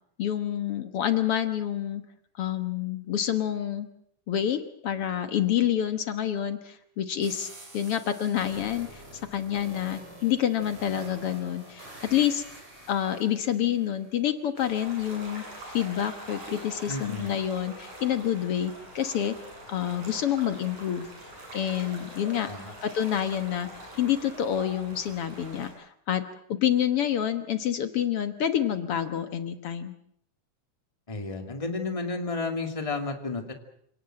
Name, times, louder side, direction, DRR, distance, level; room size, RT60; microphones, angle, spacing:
voice 1, 0.2-2.0 2.4-3.9 4.3-12.4 12.9-19.4 19.7-21.1 21.5-22.5 22.8-23.7 24.0-26.2 26.5-29.9, left 10 dB, 55° left, 9 dB, 1.9 m, -28 dB
sound 1, 7.2-14.2, right 1 dB, 45° right, 6.5 m, -47 dB
sound 2, 14.6-25.7, right 1 dB, 70° right, 9.3 m, -44 dB
voice 2, 16.9-17.3 22.5-22.7 31.1-33.5, left 3 dB, 10° left, 4 dB, 2.1 m, -32 dB
27.5 x 18.0 x 7.8 m, 0.70 s
omnidirectional pair, 3.6 m